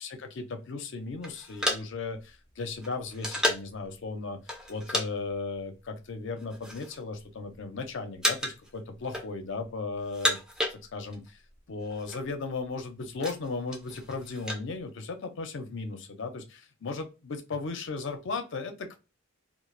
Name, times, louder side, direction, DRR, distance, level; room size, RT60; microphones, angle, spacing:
voice 1, 0.0-4.4 4.7-10.4 10.7-11.4 11.7-19.0, left 3 dB, 60° left, 6 dB, 0.5 m, -36 dB
sound 1, 1.2-3.8 4.5-5.1 5.3-5.6 6.2-7.0 7.3-7.8 8.2-8.7 9.0-9.6 10.0-11.3 11.5-11.6 11.8-12.2 12.7-14.6, equal, 5° right, 0.4 m, -32 dB
2.4 x 2.0 x 3.1 m, 0.29 s
head